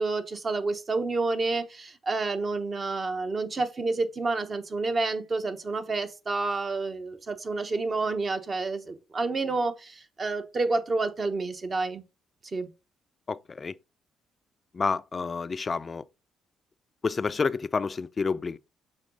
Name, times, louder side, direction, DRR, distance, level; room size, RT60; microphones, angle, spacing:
voice 1, 0.0-12.0 12.4-12.7, right 3 dB, 40° right, 1.1 m, -29 dB
voice 2, 13.3-13.7 14.7-16.0 17.0-18.6, left 4 dB, 35° left, 0.4 m, -29 dB
6.5 x 4.0 x 3.8 m
supercardioid pair, 70°, 0 cm